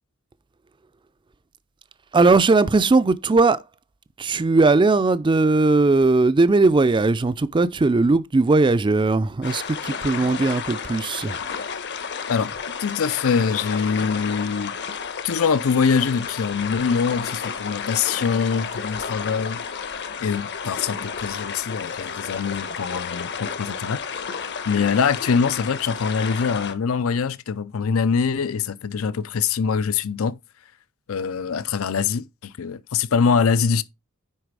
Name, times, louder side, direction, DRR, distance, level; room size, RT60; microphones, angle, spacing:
voice 1, 2.1-3.6 4.2-11.4, right 3 dB, 20° right, 0.4 m, -18 dB
sound 1, 9.4-26.7, left 6 dB, 55° left, 1.1 m, -32 dB
voice 2, 12.8-14.7 15.2-19.6 20.2-24.2 24.6-30.4 31.1-33.8, left 6 dB, 70° left, 0.5 m, -23 dB
10.0 x 4.1 x 4.7 m
head